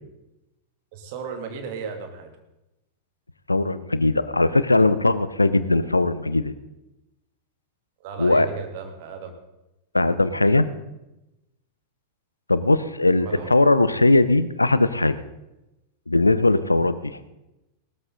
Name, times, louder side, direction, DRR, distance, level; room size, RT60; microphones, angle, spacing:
voice 1, 0.9-2.3 8.0-9.3 13.2-13.5, right 5 dB, 50° right, 4 dB, 2.5 m, -35 dB
voice 2, 3.5-6.5 8.2-8.5 9.9-10.7 12.5-15.2 16.1-17.2, left 2 dB, 80° left, 15 dB, 0.7 m, -19 dB
18.0 x 13.5 x 4.0 m, 0.96 s
figure-of-eight pair, 90°, 0 cm